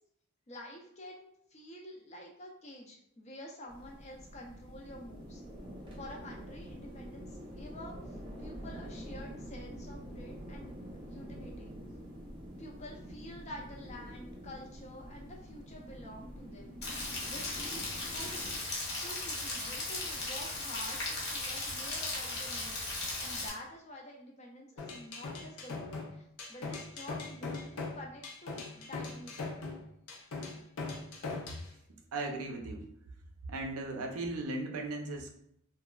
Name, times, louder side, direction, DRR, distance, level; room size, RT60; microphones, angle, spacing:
voice 1, 0.5-5.4 6.0-10.7 11.0-11.8 12.6-17.8 18.1-18.5 19.0-29.5, left 1 dB, 30° left, 0 dB, 0.4 m, -49 dB
sound 1, 3.7-18.6, equal, 20° right, 0.4 m, -47 dB
Rain, 16.8-23.5, left 2 dB, 50° left, 0.8 m, -37 dB
sound 2, 24.8-31.7, left 3 dB, 85° left, 0.6 m, -40 dB
voice 2, 32.1-32.9 33.5-35.3, right 2 dB, 80° right, 3 dB, 0.5 m, -37 dB
2.9 x 2.3 x 2.2 m, 0.74 s
head